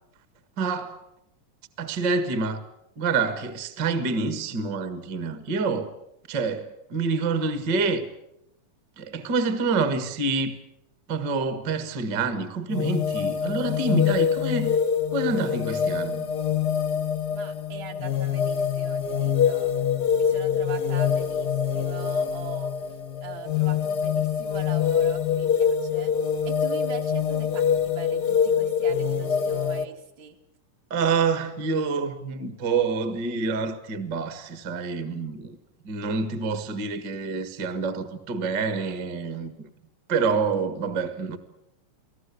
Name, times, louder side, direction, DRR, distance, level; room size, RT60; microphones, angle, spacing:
voice 1, 0.6-1.1 1.8-2.6 3.0-6.0 6.3-8.1 9.0-10.5 11.1-14.8 15.1-16.3 30.9-35.6 35.8-39.7 40.1-41.4, right 4 dB, 40° right, 1.9 m, -27 dB
sound 1, 12.7-29.9, left 8 dB, 60° left, 1.0 m, -25 dB
voice 2, 17.3-19.7 20.2-26.1 26.4-30.4, right 7 dB, 60° right, 3.5 m, -41 dB
29.5 x 19.0 x 8.4 m
omnidirectional pair, 3.7 m